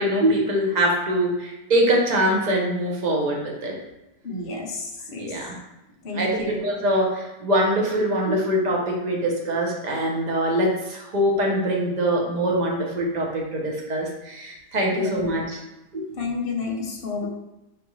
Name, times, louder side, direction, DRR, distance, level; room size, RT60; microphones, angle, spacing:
voice 1, 0.0-3.8 5.2-5.6 6.1-15.6 15.9-16.0, right 1 dB, 35° right, -1 dB, 0.7 m, -23 dB
voice 2, 4.2-5.4 6.0-6.6 15.0-15.3 16.1-17.3, left 3 dB, 45° left, 0 dB, 0.8 m, -30 dB
5.0 x 3.4 x 3.1 m, 0.95 s
omnidirectional pair, 1.8 m